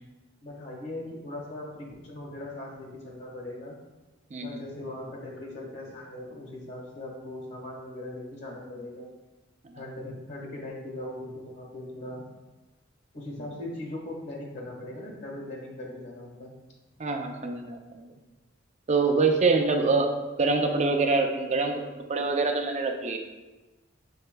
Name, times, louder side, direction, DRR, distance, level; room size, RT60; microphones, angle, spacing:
voice 1, 0.4-3.7 4.4-9.1 9.7-12.2 13.1-16.5, left 1 dB, 60° left, -1 dB, 1.4 m, -39 dB
voice 2, 17.0-18.1 18.9-21.8 22.1-23.2, right 3 dB, 35° right, 4 dB, 0.4 m, -25 dB
5.6 x 4.2 x 2.2 m, 1.1 s
head